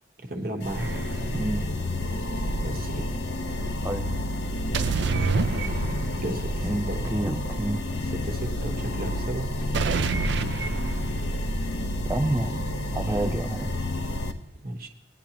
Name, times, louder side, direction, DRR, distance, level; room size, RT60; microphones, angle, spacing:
voice 1, 0.2-0.8 2.6-3.1 6.2-7.1 8.1-9.4 14.6-14.9, right 1 dB, 50° right, 3 dB, 1.2 m, -34 dB
sound 1, 0.6-14.3, left 1 dB, 65° left, 0.9 m, -30 dB
sound 2, 0.8-1.4 4.7-6.3 9.7-11.4, right 4 dB, 70° right, 0.5 m, -28 dB
voice 2, 1.3-1.7 3.8-4.1 6.6-7.8 12.0-13.7, right 1 dB, 15° right, 3 dB, 0.4 m, -29 dB
18.0 x 10.0 x 2.9 m, 0.96 s
head